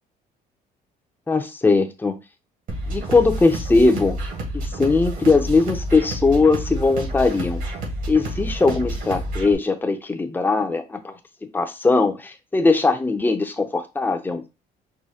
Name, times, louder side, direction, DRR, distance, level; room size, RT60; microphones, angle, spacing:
voice 1, 1.3-2.2 2.9-4.2 4.8-7.6 8.1-11.1 11.5-14.4, left 3 dB, 10° left, 6 dB, 0.7 m, -20 dB
sound 1, 2.7-9.5, right 1 dB, 55° right, 1.8 m, -29 dB
4.9 x 2.2 x 4.1 m, 0.27 s
cardioid pair, 110°, 17 cm